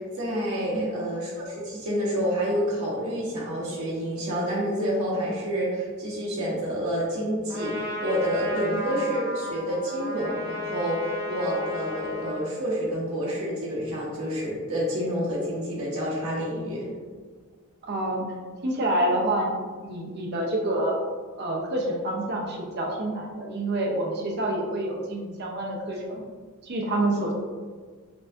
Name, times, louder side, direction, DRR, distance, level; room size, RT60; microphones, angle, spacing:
voice 1, 0.0-16.9, equal, 90° right, -5 dB, 0.8 m, -28 dB
Trumpet, 7.5-12.5, left 2 dB, 15° right, 0.8 m, -34 dB
voice 2, 17.8-18.3 18.6-21.0 21.4-26.2 26.6-27.3, right 1 dB, 50° right, 0 dB, 0.6 m, -27 dB
4.5 x 2.7 x 2.5 m, 1.5 s
head